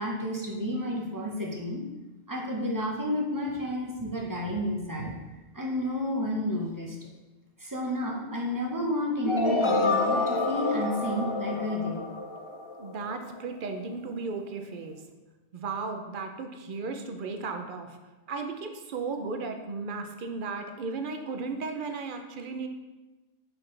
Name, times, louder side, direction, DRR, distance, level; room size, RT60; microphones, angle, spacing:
voice 1, 0.0-1.8 2.3-5.1 5.5-7.0 7.6-12.0, left 1 dB, 20° right, -1 dB, 1.0 m, -31 dB
sound 1, 9.2-13.2, left 3 dB, 40° left, 0.5 m, -28 dB
voice 2, 12.8-15.0 15.5-18.0 18.3-22.7, right 4 dB, 55° right, 5 dB, 0.8 m, -35 dB
6.1 x 5.9 x 3.3 m, 1.1 s
omnidirectional pair, 1.2 m